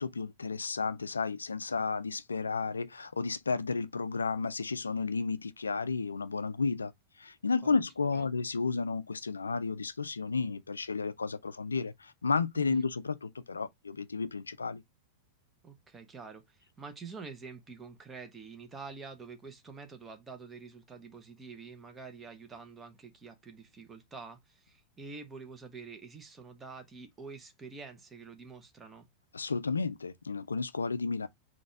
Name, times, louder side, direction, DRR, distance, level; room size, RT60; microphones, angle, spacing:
voice 1, 0.0-6.9 7.2-14.8 29.3-31.3, left 4 dB, 75° left, 0.3 m, -32 dB
voice 2, 12.6-12.9 15.6-29.1, right 4 dB, 15° right, 1.0 m, -47 dB
4.0 x 2.5 x 4.4 m
figure-of-eight pair, 90°, 0 cm